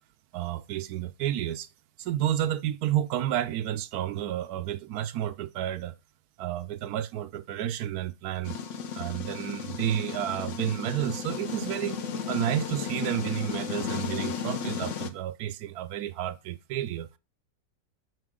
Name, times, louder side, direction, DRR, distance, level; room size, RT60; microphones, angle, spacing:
voice 1, 0.3-1.7 2.0-6.0 6.4-8.6 8.9-12.0 12.3-17.1, right 11 dB, 70° right, 1.0 m, -31 dB
sound 1, 8.4-15.1, left 6 dB, 55° left, 0.9 m, -34 dB
7.9 x 5.6 x 3.7 m
omnidirectional pair, 1.9 m